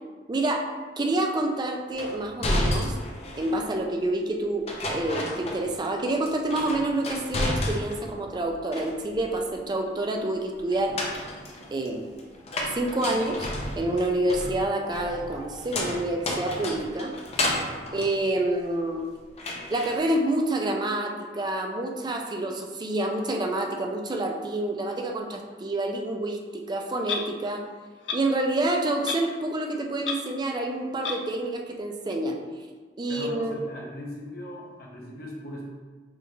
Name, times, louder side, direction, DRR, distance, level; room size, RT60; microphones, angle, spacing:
voice 1, 0.3-0.7 1.0-3.0 3.4-11.0 11.7-12.0 12.7-13.5 13.8-17.1 17.9-19.1 19.7-27.6 28.1-32.4 33.0-33.5, right 1 dB, 25° right, 3 dB, 0.4 m, -28 dB
sound 1, 2.0-3.6 4.7-6.0 6.2-8.1 8.5-9.3 10.7-19.0 19.4-20.0, left 1 dB, 35° left, 0.6 m, -31 dB
voice 2, 17.7-18.1 33.1-35.7, left 1 dB, 60° left, -2 dB, 0.9 m, -39 dB
Clock, 27.0-27.2 28.1-28.2 29.1-29.3 29.6-29.7 30.0-30.2 31.0-31.2, left 5 dB, 85° left, 0.4 m, -30 dB
5.0 x 2.5 x 3.0 m, 1.4 s
head